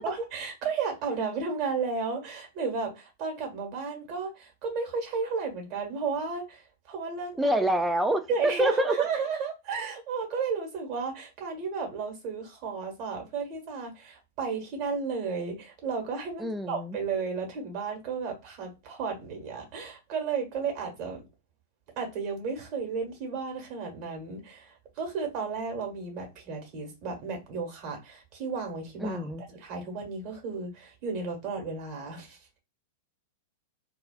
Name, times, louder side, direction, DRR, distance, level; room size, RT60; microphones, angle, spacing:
voice 1, 0.0-7.5 8.3-21.2 22.0-32.6, right 5 dB, 45° right, 1.1 m, -33 dB
voice 2, 7.4-9.0 16.4-17.0 29.0-29.4, equal, 5° right, 0.3 m, -26 dB
2.3 x 2.3 x 2.2 m
figure-of-eight pair, 100°, 0 cm